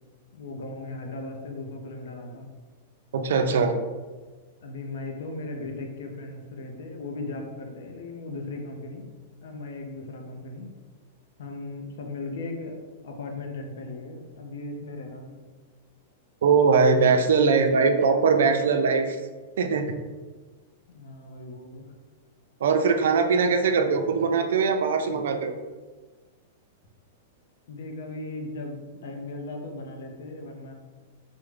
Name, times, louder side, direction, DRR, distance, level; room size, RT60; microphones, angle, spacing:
voice 1, 0.3-2.5 4.6-9.1 9.4-10.7 11.4-15.4 20.9-21.9 27.7-30.7, left 2 dB, 75° left, 3 dB, 0.5 m, -37 dB
voice 2, 3.1-3.7 16.4-19.2 19.6-19.8 22.6-25.5, right 5 dB, 80° right, 6 dB, 0.4 m, -21 dB
3.5 x 2.0 x 3.1 m, 1.3 s
hypercardioid pair, 140°, 0 cm